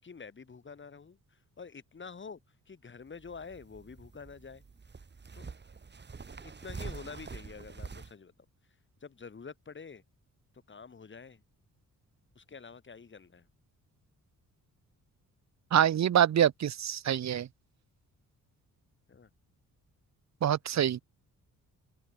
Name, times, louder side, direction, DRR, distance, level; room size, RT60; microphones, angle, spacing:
voice 1, 0.0-4.6 5.3-5.6 6.3-8.3 9.0-10.0 10.7-11.4 12.4-13.5 19.1-19.3, left 5 dB, 35° left, 5.5 m, -47 dB
sound 1, 3.0-8.1, right 4 dB, 30° right, 6.3 m, -46 dB
voice 2, 15.7-17.5 20.4-21.0, right 10 dB, 55° right, 1.1 m, -25 dB
cardioid pair, 125°, 34 cm